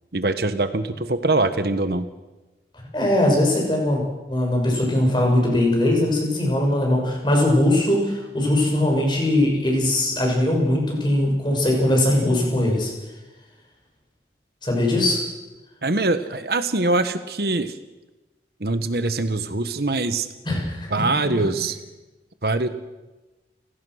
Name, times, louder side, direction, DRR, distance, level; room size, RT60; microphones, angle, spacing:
voice 1, 0.1-2.1 15.8-17.8 18.6-20.3 20.9-21.8 22.4-22.7, right 2 dB, 60° right, 11 dB, 1.1 m, -23 dB
voice 2, 2.9-4.0 4.3-12.9 14.6-15.2 20.4-20.9, left 1 dB, 25° left, 0 dB, 6.9 m, -20 dB
30.0 x 16.5 x 6.4 m, 1.1 s
head